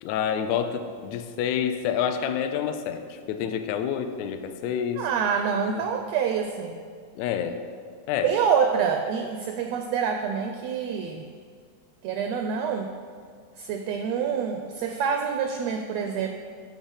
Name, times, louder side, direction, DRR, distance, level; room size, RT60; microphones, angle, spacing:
voice 1, 0.0-3.0 3.3-5.0 5.8-5.9 7.2-7.6 8.1-8.3, left 8 dB, 75° left, 7 dB, 1.7 m, -28 dB
voice 2, 4.9-6.8 8.2-11.3 12.0-12.9 13.6-16.4, right 6 dB, 85° right, 5 dB, 1.5 m, -26 dB
11.0 x 3.9 x 7.1 m, 2.1 s
omnidirectional pair, 3.5 m